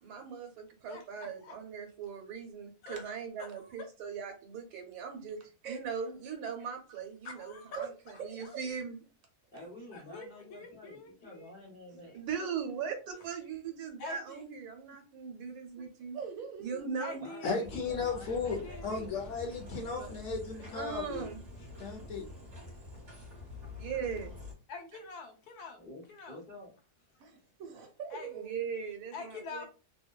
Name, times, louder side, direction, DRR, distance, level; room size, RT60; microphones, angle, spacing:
voice 1, 0.0-5.4 5.7-9.0 12.1-16.2 16.6-17.3 20.7-21.4 23.8-24.3 28.3-29.6, right 6 dB, 85° right, 1.1 m, -39 dB
voice 2, 0.9-1.6 2.8-3.1 3.4-3.9 7.2-7.9 8.4-8.6 9.9-11.5 12.1-12.2 14.0-14.4 17.0-17.8 18.6-19.1 24.7-25.8 26.1-26.4 28.1-28.3 29.1-29.6, left 4 dB, 85° left, 1.2 m, -46 dB
voice 3, 9.5-12.2 17.2-19.4 20.0-20.2 25.8-26.0 26.3-26.7 27.1-27.4, left 1 dB, 45° left, 0.8 m, -50 dB
voice 4, 16.1-17.0 27.2-28.5, right 7 dB, 70° right, 1.0 m, -42 dB
voice 5, 17.4-21.2 21.8-22.3, left 4 dB, 65° left, 0.9 m, -35 dB
sound 1, 17.6-24.5, left 2 dB, 30° right, 0.8 m, -47 dB
2.8 x 2.1 x 2.2 m
omnidirectional pair, 1.6 m